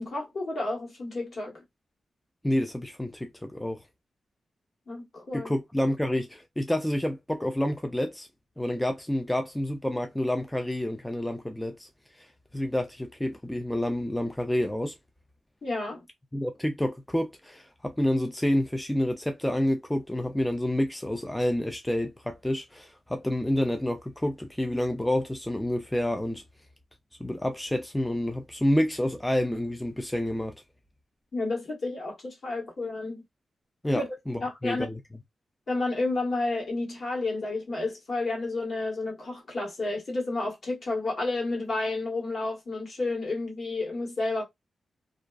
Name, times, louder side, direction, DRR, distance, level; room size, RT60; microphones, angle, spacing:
voice 1, 0.0-1.6 4.9-5.5 15.6-16.0 31.3-33.2 33.9-34.0 34.4-34.9 35.7-44.4, left 2 dB, 60° left, 1.2 m, -31 dB
voice 2, 2.4-3.8 5.3-8.3 8.6-11.9 12.5-15.0 16.3-26.4 27.2-30.6 33.8-35.0, left 1 dB, 5° left, 0.3 m, -28 dB
2.4 x 2.3 x 2.3 m
wide cardioid pair, 120°, 0 cm